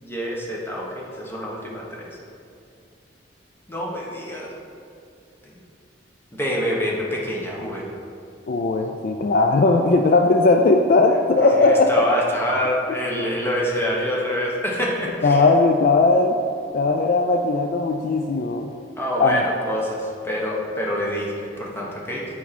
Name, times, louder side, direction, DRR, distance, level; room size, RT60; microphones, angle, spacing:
voice 1, 0.0-2.1 3.7-4.5 5.4-5.6 6.3-7.8 11.6-15.4 19.0-22.3, equal, 15° left, -3 dB, 1.1 m, -26 dB
voice 2, 8.5-11.9 15.2-16.4 16.7-18.7 19.2-19.4, left 3 dB, 50° left, 4 dB, 0.3 m, -18 dB
8.4 x 4.4 x 4.2 m, 2.5 s
head